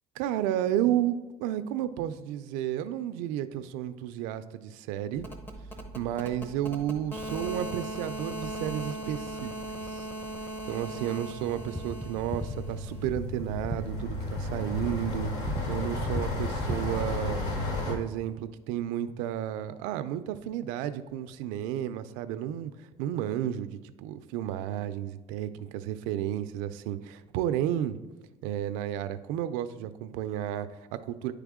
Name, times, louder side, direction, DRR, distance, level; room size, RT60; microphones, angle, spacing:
voice 1, 0.2-5.3 5.9-9.5 9.9-10.1 10.6-17.4 17.9-28.0 28.4-31.3, right 11 dB, 90° right, 11 dB, 0.4 m, -32 dB
sound 1, 5.1-13.0, right 1 dB, 15° left, 0.8 m, -38 dB
sound 2, 11.4-17.0, equal, ahead, 0.4 m, -38 dB
sound 3, 12.3-18.0, left 2 dB, 75° left, 1.3 m, -33 dB
10.0 x 3.4 x 3.6 m, 1.2 s
cardioid pair, 115°, 13 cm